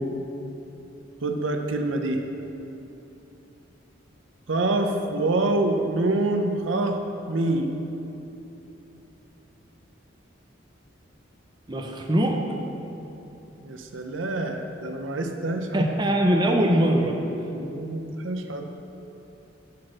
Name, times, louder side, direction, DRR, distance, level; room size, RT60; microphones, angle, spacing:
voice 1, 1.2-2.2 4.5-7.0 7.3-7.7 13.6-15.9 17.5-18.7, right 2 dB, 75° right, 5 dB, 0.7 m, -26 dB
voice 2, 11.7-12.4 15.7-17.1, right 1 dB, 20° right, 1 dB, 0.6 m, -22 dB
10.5 x 4.3 x 6.4 m, 2.9 s
head